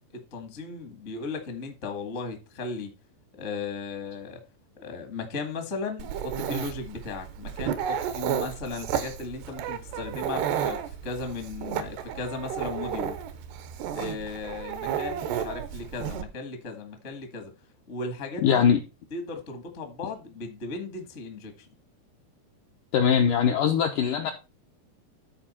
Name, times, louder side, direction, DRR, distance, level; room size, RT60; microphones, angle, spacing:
voice 1, 0.1-2.9 3.3-4.4 4.8-13.1 13.9-17.5 17.9-18.7 19.1-21.7, left 3 dB, 50° left, 0.8 m, -36 dB
Dog, 6.0-16.2, right 9 dB, 85° right, 3.0 m, -32 dB
voice 2, 18.4-18.8 22.9-24.3, left 7 dB, 80° left, 1.9 m, -21 dB
13.0 x 4.6 x 4.3 m
omnidirectional pair, 4.7 m